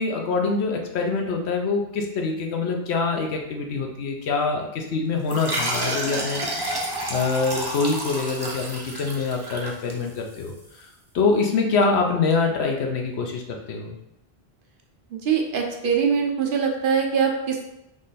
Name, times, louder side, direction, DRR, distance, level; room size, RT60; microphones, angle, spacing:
voice 1, 0.0-6.4 7.1-10.9 11.1-14.0, left 4 dB, 85° left, 2 dB, 1.0 m, -25 dB
sound 1, 5.3-10.4, right 1 dB, 25° right, 0.7 m, -30 dB
voice 2, 15.2-17.6, right 6 dB, 60° right, 2 dB, 0.8 m, -23 dB
3.8 x 3.1 x 4.0 m, 0.86 s
omnidirectional pair, 1.1 m